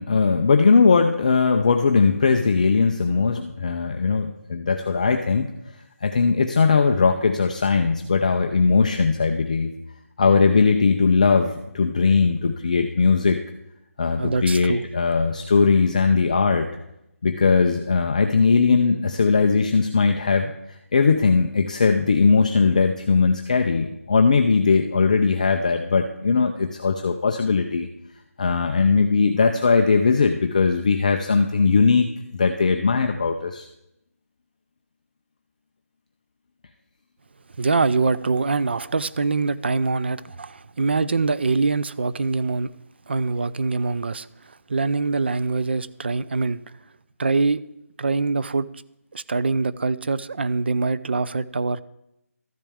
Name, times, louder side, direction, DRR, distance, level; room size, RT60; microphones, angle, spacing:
voice 1, 0.0-5.5 6.0-9.7 10.2-13.4 14.0-16.7 17.2-27.9 28.4-32.1 32.3-33.7, left 4 dB, 30° left, 5 dB, 0.4 m, -19 dB
voice 2, 14.2-14.8 37.6-42.7 43.1-46.6 47.2-47.6 48.0-48.7 49.1-51.8, right 4 dB, 40° right, 16 dB, 0.4 m, -24 dB
13.0 x 10.5 x 3.5 m, 0.85 s
figure-of-eight pair, 170°, 8 cm